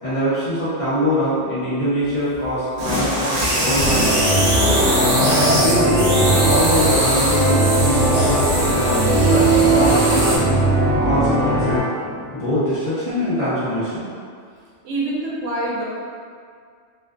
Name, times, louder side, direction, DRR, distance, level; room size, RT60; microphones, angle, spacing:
voice 1, 0.0-4.1 4.5-4.8 5.6-10.5 11.0-11.8 12.3-14.1, equal, 35° left, -13 dB, 0.6 m, -23 dB
sound 1, 2.4-10.4, equal, 45° right, 0.6 m, -21 dB
sound 2, 3.8-11.8, right 2 dB, 85° left, 1.1 m, -19 dB
sound 3, 6.4-13.1, left 1 dB, 5° right, 0.7 m, -36 dB
voice 2, 14.8-15.8, right 2 dB, 80° right, -5 dB, 0.9 m, -25 dB
2.4 x 2.2 x 2.4 m, 2.2 s
omnidirectional pair, 1.2 m